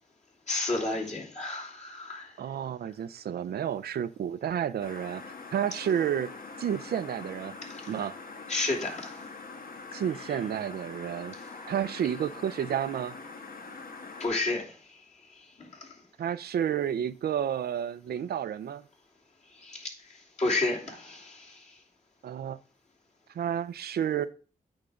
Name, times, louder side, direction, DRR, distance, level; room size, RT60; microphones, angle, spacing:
voice 1, 0.5-2.4 7.6-7.9 8.5-9.2 9.9-10.0 11.3-11.7 14.2-16.0 19.5-21.8, left 2 dB, 45° left, 3.0 m, -33 dB
voice 2, 2.4-5.2 5.5-6.3 6.6-7.6 7.9-8.1 9.9-11.3 11.7-13.2 16.2-18.8 22.2-22.6 23.3-24.3, right 9 dB, 90° right, 0.5 m, -30 dB
sound 1, 4.8-14.3, left 4 dB, 65° left, 1.3 m, -44 dB
8.8 x 3.6 x 6.3 m
cardioid pair, 80°, 16 cm